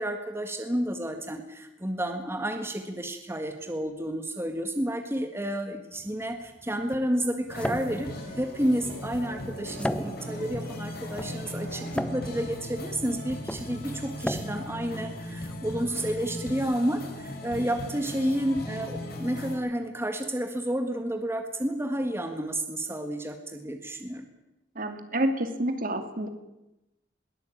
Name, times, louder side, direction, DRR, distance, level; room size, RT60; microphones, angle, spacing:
voice 1, 0.0-24.2, right 1 dB, 15° right, 5 dB, 1.7 m, -30 dB
sound 1, 5.9-15.8, equal, 5° left, 0.9 m, -37 dB
sound 2, 7.5-19.6, left 1 dB, 55° left, 5.5 m, -38 dB
voice 2, 24.7-26.3, right 1 dB, 50° right, 7 dB, 2.6 m, -28 dB
21.5 x 18.0 x 8.9 m, 0.96 s
head